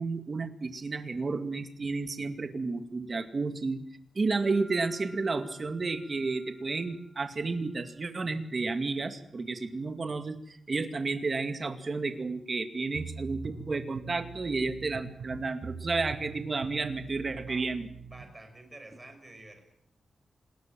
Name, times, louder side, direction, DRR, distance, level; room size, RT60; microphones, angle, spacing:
voice 1, 0.0-3.8 4.1-17.9, right 3 dB, 30° right, 8 dB, 2.3 m, -32 dB
sound 1, 4.3-8.3, left 1 dB, 65° left, 5.5 m, -54 dB
sound 2, 12.9-18.3, right 5 dB, 60° right, 3.4 m, -43 dB
voice 2, 17.3-17.7 18.1-19.7, right 2 dB, 15° right, 5 dB, 5.9 m, -50 dB
27.0 x 20.5 x 7.6 m, 0.66 s
wide cardioid pair, 175°, 0 cm